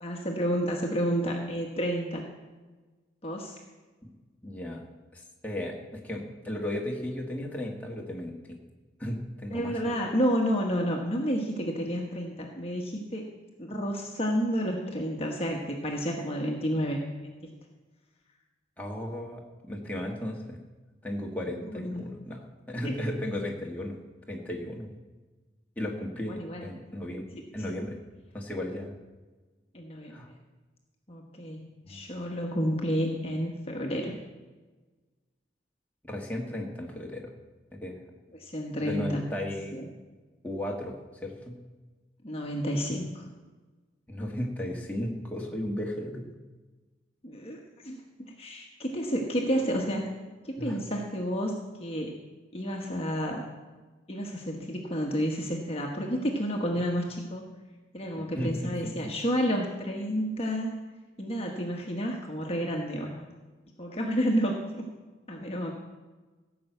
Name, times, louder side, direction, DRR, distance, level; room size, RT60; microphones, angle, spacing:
voice 1, 0.0-2.3 3.2-3.5 9.5-13.3 13.6-17.5 21.7-22.1 22.8-22.9 26.3-26.7 27.6-27.7 29.7-30.2 31.1-34.1 38.3-39.2 39.7-39.9 42.2-43.3 47.2-50.0 50.4-51.5 51.8-52.2 52.5-53.4 54.1-57.5 57.9-60.7 61.2-63.3 63.8-64.9 65.3-65.7, equal, 35° left, 0 dB, 1.2 m, -30 dB
voice 2, 4.4-4.8 5.1-8.6 9.0-9.9 18.8-20.6 21.0-22.4 22.7-24.0 24.3-24.9 25.8-27.3 27.5-28.0 28.3-29.0 30.1-30.3 31.9-32.0 36.1-37.3 37.8-38.0 38.8-39.7 40.4-40.9 41.2-41.6 44.1-46.3 50.6-50.8 58.2-58.9, left 1 dB, 10° left, -1 dB, 1.7 m, -35 dB
16.0 x 6.1 x 8.0 m, 1.3 s
head